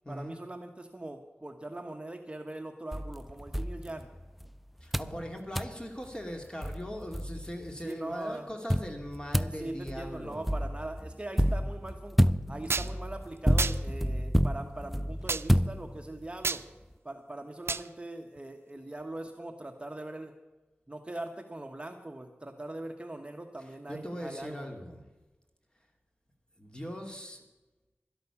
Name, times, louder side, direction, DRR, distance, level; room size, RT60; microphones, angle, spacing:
voice 1, 0.1-4.1 7.8-8.5 9.6-12.2 12.5-16.6 17.0-20.3 20.9-24.7, right 2 dB, 25° right, 5 dB, 1.1 m, -41 dB
sound 1, 2.9-4.5 4.9-5.2 5.5-5.8 6.3-6.4 6.6-7.7 8.7-16.3, equal, ahead, 0.4 m, -29 dB
voice 2, 4.8-10.4 23.6-25.1 26.6-27.4, equal, 20° left, 3 dB, 2.3 m, -40 dB
sound 2, 12.7-12.9 13.6-13.8 15.3-15.4 16.4-16.6 17.7-17.9, right 4 dB, 75° right, 0.4 m, -29 dB
12.0 x 11.5 x 7.0 m, 1.1 s
wide cardioid pair, 75°, 4 cm